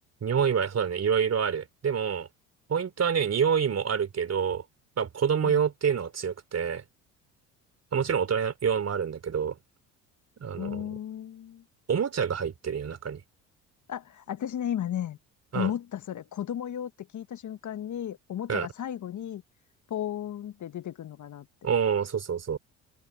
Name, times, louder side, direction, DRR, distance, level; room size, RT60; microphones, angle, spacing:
voice 1, 0.2-2.3 2.7-4.6 5.0-6.8 7.9-9.6 10.4-10.9 11.9-13.2 15.5-15.7 18.5-18.7 21.6-22.6, right 7 dB, 40° right, 3.4 m, -27 dB
voice 2, 10.6-11.6 13.9-15.2 15.5-19.4 19.9-21.5, left 10 dB, 45° left, 1.6 m, -34 dB
open air
hypercardioid pair, 60°, 41 cm